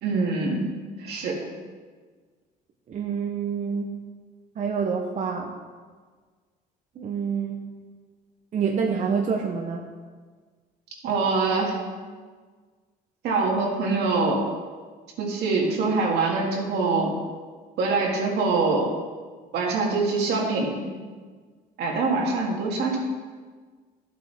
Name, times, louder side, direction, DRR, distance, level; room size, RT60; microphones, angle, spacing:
voice 1, 0.0-0.7 1.0-1.4 11.0-11.8 13.2-14.4 15.2-17.1 17.8-18.9 19.5-20.9 21.8-23.0, right 3 dB, 75° right, -2 dB, 2.3 m, -24 dB
voice 2, 2.9-4.0 4.6-5.5 7.0-7.7 8.5-9.8, right 6 dB, 45° right, 1 dB, 0.9 m, -27 dB
12.0 x 7.7 x 3.5 m, 1.5 s
cardioid pair, 110°, 17 cm